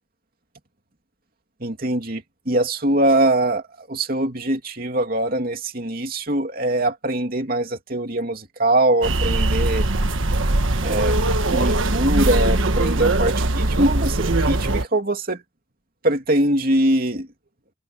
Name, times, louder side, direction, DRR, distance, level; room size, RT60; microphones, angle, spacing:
voice 1, 1.6-9.9 10.8-15.4 16.0-17.3, right 1 dB, 45° right, 2.9 m, -22 dB
sound 1, 9.0-14.9, right 2 dB, 80° right, 1.4 m, -21 dB
open air
head